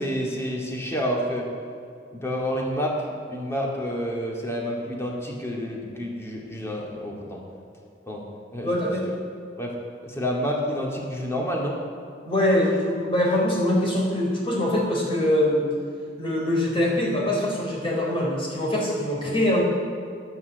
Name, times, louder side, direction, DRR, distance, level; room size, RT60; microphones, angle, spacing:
voice 1, 0.0-1.5 2.1-7.4 8.0-8.2 8.5-8.9 9.6-9.7 10.0-11.8, equal, 15° left, -2 dB, 2.3 m, -29 dB
voice 2, 8.6-9.1 12.2-15.7 16.2-19.6, left 1 dB, 30° left, -3 dB, 3.9 m, -23 dB
10.5 x 10.0 x 7.8 m, 2.4 s
head